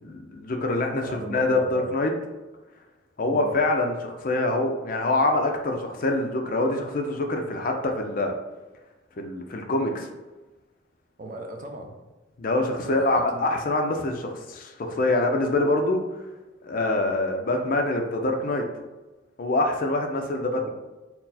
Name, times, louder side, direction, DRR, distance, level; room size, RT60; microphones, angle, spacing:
voice 1, 0.0-2.1 3.2-8.3 9.2-10.1 12.4-16.0 16.6-18.6 19.4-20.7, left 2 dB, 45° left, 3 dB, 0.5 m, -25 dB
voice 2, 1.1-1.9 3.3-3.5 11.2-11.9 12.8-13.5 20.5-20.7, right 1 dB, 40° right, 2 dB, 0.5 m, -37 dB
4.4 x 2.0 x 4.0 m, 1.2 s
head